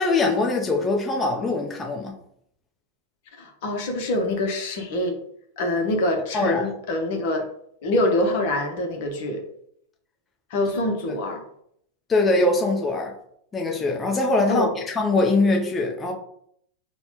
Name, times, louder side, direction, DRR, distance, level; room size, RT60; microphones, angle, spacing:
voice 1, 0.0-2.1 6.3-6.7 12.1-13.1 13.5-16.1, left 2 dB, 20° left, 0.7 m, -22 dB
voice 2, 3.4-5.2 5.6-7.4 7.8-9.4 10.5-11.4 14.5-14.7, left 1 dB, 55° left, 0.8 m, -25 dB
5.4 x 2.2 x 2.9 m
figure-of-eight pair, 90°, 0 cm